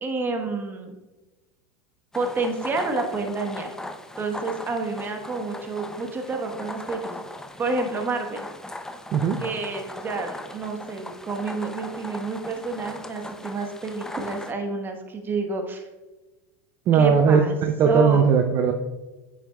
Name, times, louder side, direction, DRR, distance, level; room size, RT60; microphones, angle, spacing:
voice 1, 0.0-1.0 2.1-3.7 4.2-7.2 7.6-8.4 9.4-15.8 16.9-17.6 17.8-18.3, right 3 dB, 25° right, 4 dB, 1.3 m, -29 dB
sound 1, 2.1-14.5, left 1 dB, 5° left, 0.5 m, -38 dB
voice 2, 16.9-18.7, right 6 dB, 40° right, 6 dB, 0.6 m, -19 dB
8.9 x 7.4 x 2.3 m, 1.2 s
hypercardioid pair, 95°, 9 cm